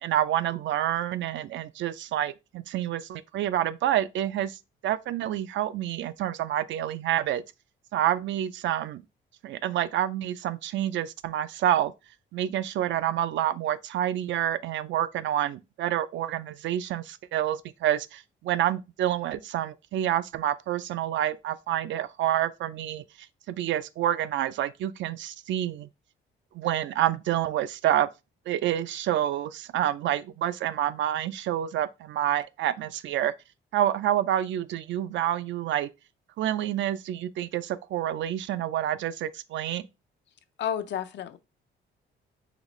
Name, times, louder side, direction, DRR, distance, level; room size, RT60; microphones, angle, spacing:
voice 1, 0.0-4.6 4.8-7.4 7.9-9.0 9.4-11.9 12.3-23.0 23.5-25.9 26.5-28.1 28.5-33.3 33.7-35.9 36.4-39.8, right 11 dB, 70° right, 0.4 m, -28 dB
voice 2, 40.6-41.4, left 9 dB, 65° left, 0.5 m, -31 dB
4.0 x 3.0 x 3.0 m
cardioid pair, 90°, 20 cm